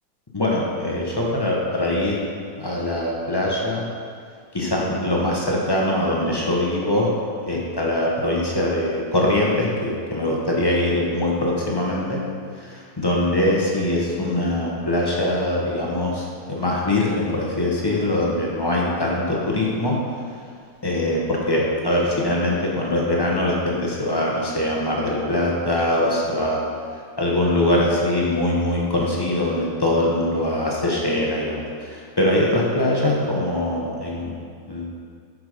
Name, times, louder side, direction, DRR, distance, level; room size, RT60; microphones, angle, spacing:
voice 1, 0.3-2.2 2.6-3.8 4.5-7.1 7.5-12.2 12.5-19.9 20.8-26.6 27.2-34.8, left 1 dB, 20° left, -3 dB, 0.7 m, -22 dB
7.9 x 5.0 x 5.0 m, 2.2 s
omnidirectional pair, 2.0 m